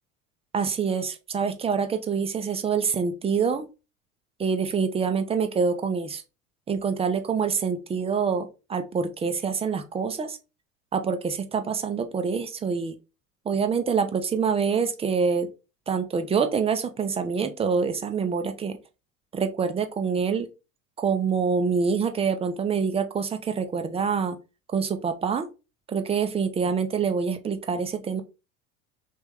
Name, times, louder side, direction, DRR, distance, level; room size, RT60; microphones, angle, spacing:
voice 1, 0.5-3.7 4.4-6.2 6.7-10.4 10.9-12.9 13.5-15.5 15.9-18.8 19.3-20.5 21.0-24.4 24.7-25.5 25.9-28.2, right 6 dB, 15° right, 7 dB, 0.4 m, -26 dB
3.5 x 3.0 x 3.2 m, 0.29 s
hypercardioid pair, 75°, 42 cm